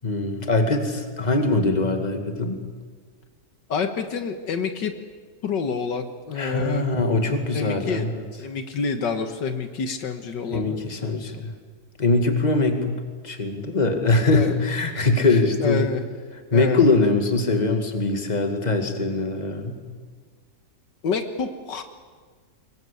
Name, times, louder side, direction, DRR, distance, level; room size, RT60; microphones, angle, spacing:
voice 1, 0.0-2.6 6.4-8.2 10.5-11.5 12.0-12.9 13.2-15.9 16.5-19.8, left 3 dB, 25° left, 6 dB, 2.3 m, -22 dB
voice 2, 3.7-4.9 5.4-6.9 7.5-8.1 8.4-11.5 14.3-14.7 15.6-16.0 16.5-16.8 21.0-21.8, left 5 dB, 80° left, 8 dB, 2.1 m, -28 dB
24.0 x 21.0 x 8.4 m, 1.5 s
omnidirectional pair, 1.9 m